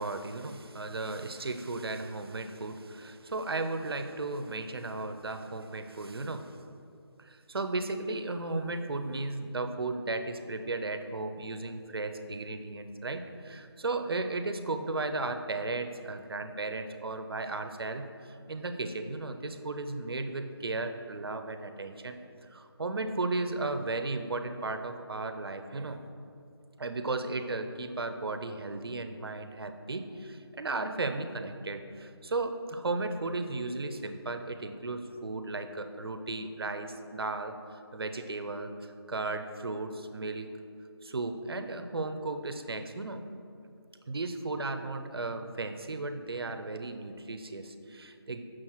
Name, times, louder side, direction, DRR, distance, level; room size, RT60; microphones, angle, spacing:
voice 1, 0.0-6.5 7.2-26.0 26.8-40.5 41.0-43.2 44.1-48.4, right 3 dB, 60° right, 8 dB, 0.5 m, -35 dB
6.3 x 6.0 x 3.0 m, 2.5 s
figure-of-eight pair, 175°, 14 cm